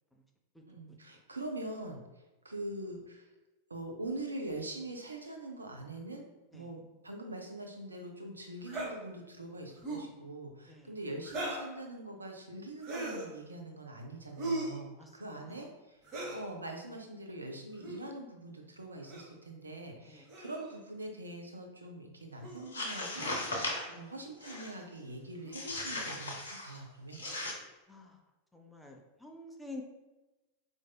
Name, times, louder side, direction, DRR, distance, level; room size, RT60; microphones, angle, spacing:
voice 1, 0.7-3.3 3.7-6.3 6.5-16.0 16.3-27.2, right 1 dB, 80° right, 2 dB, 0.5 m, -43 dB
sound 1, 8.7-8.9 9.8-10.1 11.2-11.7 12.8-13.3 14.4-14.8 16.0-16.4 17.7-18.0 19.1-19.3 20.3-20.8 22.4-22.6 23.6-23.7 24.4-24.6 25.4-25.6 27.2-27.6, right 2 dB, 35° right, 0.8 m, -38 dB
voice 2, 15.0-15.6 16.1-16.3 20.0-20.3 27.9-28.2 28.5-29.8, left 2 dB, 5° left, 1 dB, 0.4 m, -49 dB
sound 2, 22.6-23.9 24.4-24.8 25.5-26.8 27.1-27.5, left 2 dB, 70° left, 0.7 m, -37 dB
4.6 x 2.6 x 2.2 m, 1.1 s
figure-of-eight pair, 90°, 0 cm